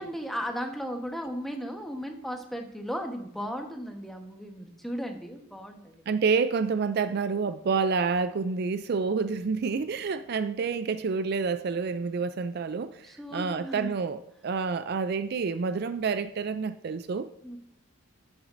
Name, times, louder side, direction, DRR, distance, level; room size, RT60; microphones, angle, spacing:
voice 1, 0.0-6.0 13.0-13.9 17.4-17.6, equal, ahead, 1.1 m, -36 dB
voice 2, 6.1-13.0 13.3-17.3, right 5 dB, 50° right, 0.4 m, -28 dB
11.0 x 8.1 x 2.6 m
head